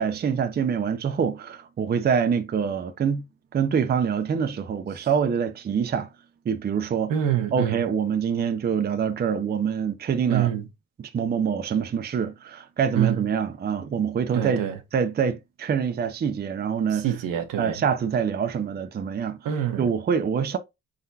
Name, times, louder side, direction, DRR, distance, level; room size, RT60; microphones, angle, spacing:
voice 1, 0.0-3.2 3.5-6.1 6.5-7.1 7.5-10.5 11.0-14.6 14.9-17.1 17.6-19.4 19.8-20.6, right 7 dB, 30° right, 0.5 m, -25 dB
voice 2, 7.1-7.8 10.3-10.7 12.9-13.2 14.3-14.8 16.9-17.8 19.4-19.9, right 10 dB, 80° right, 1.1 m, -25 dB
4.3 x 3.9 x 2.7 m
cardioid pair, 125°, 32 cm